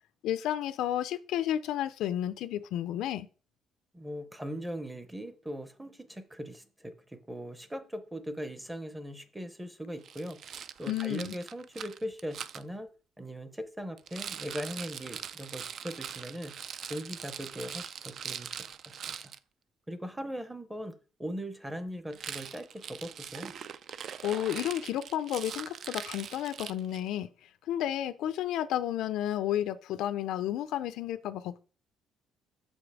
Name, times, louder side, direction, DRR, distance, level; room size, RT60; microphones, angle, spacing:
voice 1, 0.2-3.3 10.9-11.3 24.2-27.3 27.7-31.6, left 11 dB, 75° left, 0.4 m, -32 dB
voice 2, 3.9-10.4 10.8-12.9 13.2-16.5 16.9-18.5 19.1-19.3 19.9-23.5, equal, 5° right, 0.7 m, -40 dB
Rattle, 10.0-12.6 14.0-19.4 22.1-27.1, right 8 dB, 45° right, 0.3 m, -42 dB
6.6 x 5.2 x 4.8 m
cardioid pair, 160°, 0 cm